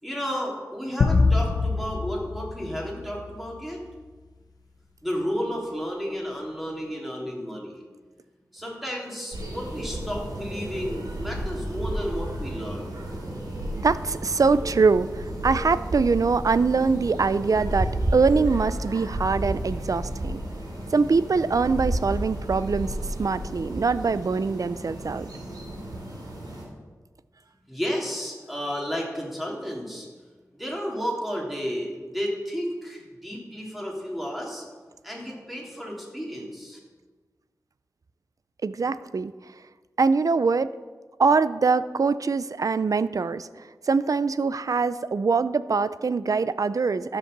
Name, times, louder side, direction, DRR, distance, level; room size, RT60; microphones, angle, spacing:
voice 1, 0.0-3.8 5.0-7.8 8.5-12.9 27.7-30.1 30.6-34.6 35.0-36.8, equal, ahead, -2 dB, 3.2 m, -32 dB
sound 1, 1.0-3.6, left 3 dB, 85° left, 0.7 m, -25 dB
sound 2, 9.3-26.6, right 1 dB, 90° right, 3.1 m, -32 dB
voice 2, 13.7-20.4 20.9-25.3 38.6-39.3 40.0-40.7 41.2-47.2, right 4 dB, 60° right, 15 dB, 0.5 m, -23 dB
13.0 x 7.5 x 6.7 m, 1.4 s
wide cardioid pair, 85°, 7 cm